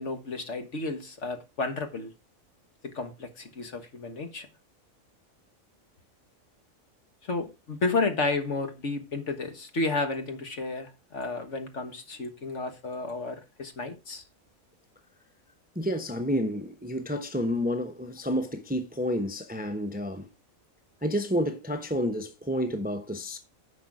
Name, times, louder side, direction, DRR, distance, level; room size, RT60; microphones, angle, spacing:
voice 1, 0.0-2.1 2.8-4.5 7.2-14.2, left 3 dB, 60° left, 1.7 m, -32 dB
voice 2, 15.8-20.3 21.0-23.4, equal, 10° right, 0.8 m, -30 dB
10.0 x 6.3 x 4.9 m
omnidirectional pair, 1.4 m